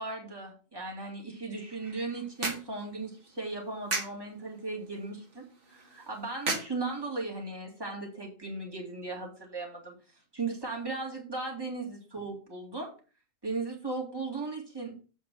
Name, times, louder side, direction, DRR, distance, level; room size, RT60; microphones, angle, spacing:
voice 1, 0.0-9.9 10.3-12.9 13.4-14.9, right 3 dB, 20° right, -1 dB, 2.5 m, -37 dB
sound 1, 1.5-7.5, right 3 dB, 65° right, 1.9 m, -39 dB
7.9 x 4.5 x 6.2 m, 0.36 s
omnidirectional pair, 1.3 m